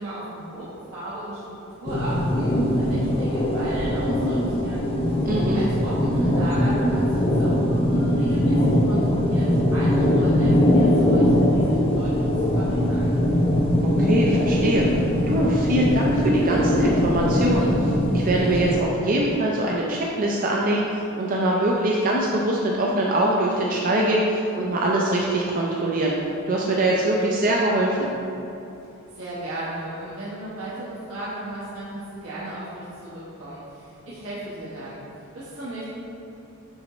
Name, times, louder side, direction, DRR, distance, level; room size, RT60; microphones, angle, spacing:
voice 1, 0.0-4.9 5.5-9.4 9.7-13.1 29.1-35.0 35.3-35.8, right 1 dB, 75° right, -10 dB, 1.3 m, -35 dB
sound 1, 1.9-18.8, left 1 dB, 25° left, 0.5 m, -21 dB
voice 2, 5.2-5.6 13.8-14.9 15.3-26.2 26.5-28.1, right 1 dB, 40° right, -2 dB, 0.5 m, -23 dB
6.1 x 5.0 x 3.1 m, 2.9 s
head